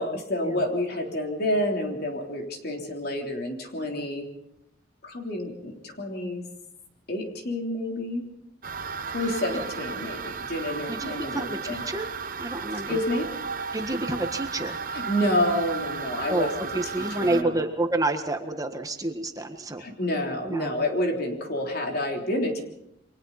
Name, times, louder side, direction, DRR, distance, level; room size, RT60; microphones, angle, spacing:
voice 1, 0.0-4.3 5.0-6.4 7.1-8.3 9.1-11.9 12.9-13.3 14.9-17.6 19.8-22.6, left 1 dB, 55° left, 2 dB, 3.6 m, -29 dB
sound 1, 8.6-17.4, right 5 dB, 50° right, 1.1 m, -34 dB
voice 2, 10.9-12.1 12.4-13.0 13.7-14.8 16.3-19.8 20.4-20.7, right 2 dB, 20° right, 5 dB, 1.5 m, -29 dB
29.0 x 24.0 x 4.2 m, 0.79 s
head